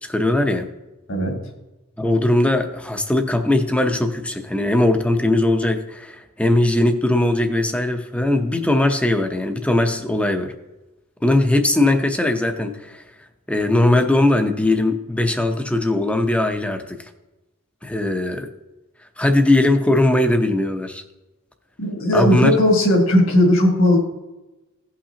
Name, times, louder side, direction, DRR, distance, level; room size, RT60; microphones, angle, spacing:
voice 1, 0.0-0.7 2.0-10.5 11.2-13.0 13.5-17.0 17.8-18.5 19.2-21.0 22.1-22.6, left 1 dB, 5° left, 6 dB, 0.7 m, -19 dB
voice 2, 21.8-24.0, left 1 dB, 65° left, 1 dB, 2.1 m, -17 dB
16.5 x 5.7 x 2.8 m, 1.1 s
head